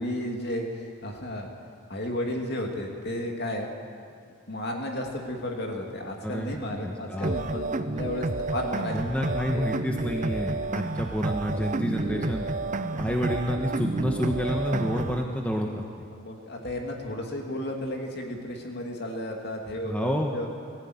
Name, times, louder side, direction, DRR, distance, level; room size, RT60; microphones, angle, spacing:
voice 1, 0.0-1.5 1.9-3.7 4.5-9.0 12.9-13.2 16.1-20.5, left 1 dB, 50° left, 1 dB, 2.7 m, -33 dB
voice 2, 6.2-7.4 8.9-12.5 13.0-15.8 19.8-20.3, equal, 5° left, 0 dB, 1.2 m, -29 dB
sound 1, 7.2-15.2, right 2 dB, 35° right, 0.6 m, -30 dB
20.5 x 15.0 x 9.6 m, 2.3 s
head